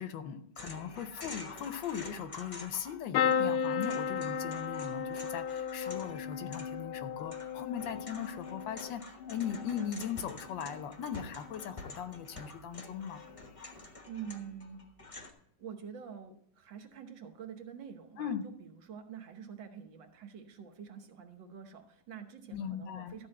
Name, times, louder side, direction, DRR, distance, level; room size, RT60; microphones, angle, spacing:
voice 1, 0.0-13.2 18.2-18.4 22.5-23.1, left 8 dB, 70° left, 10 dB, 1.3 m, -39 dB
sound 1, 0.5-3.0 3.3-15.3, left 3 dB, 25° left, 0.7 m, -48 dB
sound 2, 3.1-11.0 11.4-12.0 13.2-13.4 13.7-13.8, left 7 dB, 90° left, 1.6 m, -35 dB
voice 2, 14.1-14.9 15.6-23.3, right 7 dB, 65° right, 6 dB, 1.7 m, -47 dB
13.0 x 4.6 x 7.6 m, 0.69 s
omnidirectional pair, 2.2 m